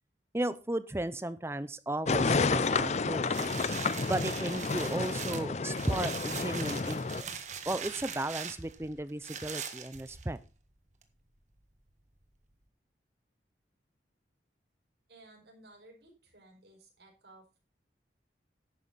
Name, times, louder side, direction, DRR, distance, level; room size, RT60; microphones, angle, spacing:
voice 1, 0.3-3.7 4.1-7.3 7.7-10.4, right 1 dB, 15° right, 15 dB, 0.5 m, -35 dB
sound 1, 2.1-7.2, left 4 dB, 40° left, 0.5 m, -30 dB
sound 2, 3.3-10.5 11.0-11.1, right 7 dB, 40° right, 1.5 m, -41 dB
voice 2, 15.1-17.6, right 2 dB, 65° right, 1 dB, 5.4 m, -57 dB
11.5 x 9.5 x 4.0 m, 0.32 s
head